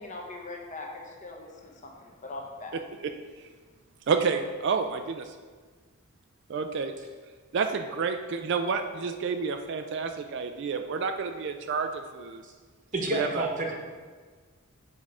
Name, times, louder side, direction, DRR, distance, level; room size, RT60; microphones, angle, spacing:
voice 1, 0.0-2.7, left 2 dB, 35° left, 0 dB, 0.8 m, -41 dB
voice 2, 4.1-5.3 6.5-6.9 7.5-12.4 13.1-13.5, right 5 dB, 55° right, 6 dB, 0.3 m, -29 dB
voice 3, 12.9-13.7, right 2 dB, 35° right, 1 dB, 1.0 m, -29 dB
7.5 x 3.5 x 4.9 m, 1.5 s
head